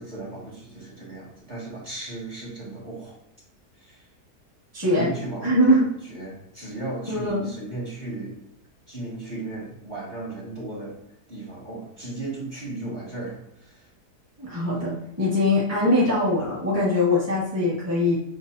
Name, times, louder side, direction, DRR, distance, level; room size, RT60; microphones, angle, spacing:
voice 1, 0.0-3.2 3.8-4.1 4.9-5.8 6.0-8.4 8.9-11.0 11.3-13.9, right 2 dB, 25° right, -6 dB, 1.8 m, -36 dB
voice 2, 4.7-5.1 5.4-5.9 7.1-7.5 14.4-18.2, left 1 dB, 10° right, -8 dB, 1.4 m, -22 dB
7.2 x 2.7 x 2.5 m, 0.78 s
omnidirectional pair, 1.7 m